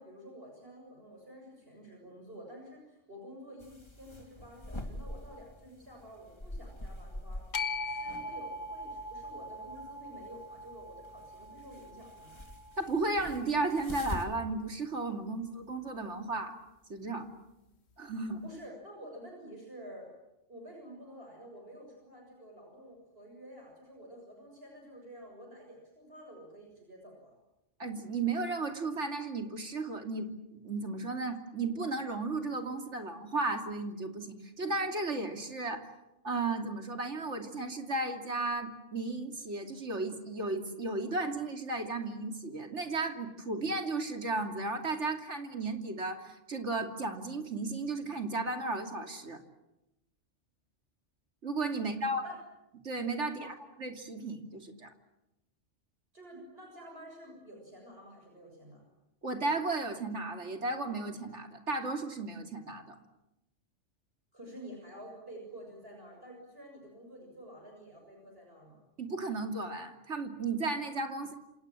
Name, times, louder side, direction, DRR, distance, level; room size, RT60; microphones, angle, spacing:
voice 1, 0.0-7.5 7.8-12.4 18.4-20.1 20.5-27.4 51.8-52.4 53.2-53.5 56.1-58.8 64.3-68.8, equal, 55° right, 1 dB, 7.2 m, -50 dB
sound 1, 3.6-14.2, left 1 dB, 20° left, 2.6 m, -45 dB
sound 2, 7.5-13.8, left 2 dB, 65° left, 1.6 m, -41 dB
voice 2, 12.8-16.6 16.9-17.3 18.0-18.4 27.8-35.9 36.2-49.4 51.4-52.2 52.8-54.9 59.2-63.0 69.0-71.3, right 3 dB, 70° right, 5 dB, 3.1 m, -34 dB
28.0 x 27.5 x 7.5 m, 0.92 s
omnidirectional pair, 1.2 m